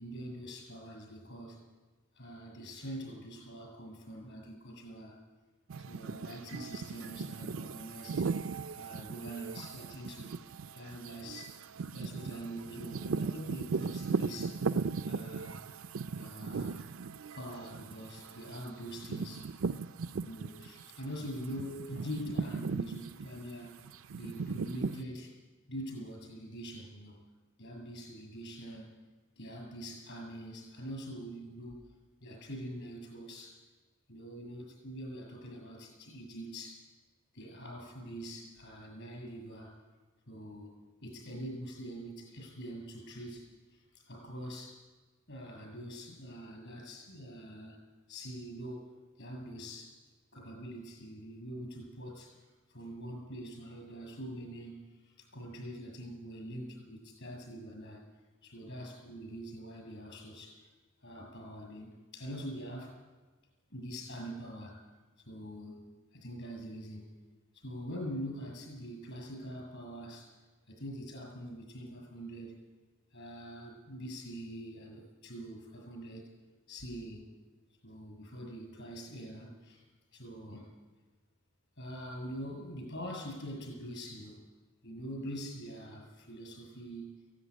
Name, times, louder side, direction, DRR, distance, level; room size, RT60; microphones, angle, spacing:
voice 1, 0.0-1.6 2.1-5.2 5.8-8.3 8.7-10.4 10.7-11.6 11.9-14.6 15.0-15.6 16.1-16.8 17.3-19.5 20.2-23.8 24.1-25.4 25.7-27.2 27.6-29.0 29.4-31.9 32.2-33.6 34.1-36.9 37.3-39.8 40.3-40.8 41.0-44.8 45.3-47.8 48.1-50.0 50.3-58.0 58.4-60.7 61.0-62.9 63.7-64.8 65.2-67.2 67.5-70.3 70.7-72.6 73.1-76.3 76.7-77.4 77.8-79.8 80.1-80.7 81.8-84.5 84.8-87.2, equal, 65° left, 2 dB, 7.5 m, -44 dB
sound 1, 5.7-20.8 21.2-25.0, right 4 dB, 80° right, 0.5 m, -38 dB
17.0 x 16.0 x 10.0 m, 1.3 s
head